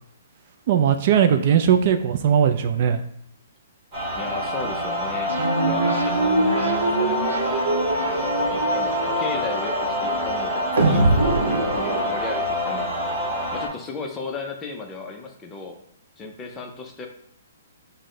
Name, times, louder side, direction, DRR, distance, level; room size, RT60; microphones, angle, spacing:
voice 1, 0.7-3.0, right 8 dB, 40° right, 7 dB, 0.3 m, -19 dB
sound 1, 3.9-13.7, left 1 dB, 15° right, 1.6 m, -26 dB
voice 2, 4.1-5.3 5.7-13.0 13.5-15.8 16.2-17.1, left 4 dB, 15° left, 2 dB, 0.5 m, -35 dB
sound 2, 5.3-12.8, right 2 dB, 85° right, 0.8 m, -24 dB
5.8 x 2.1 x 3.7 m, 0.68 s
hypercardioid pair, 160°, 0 cm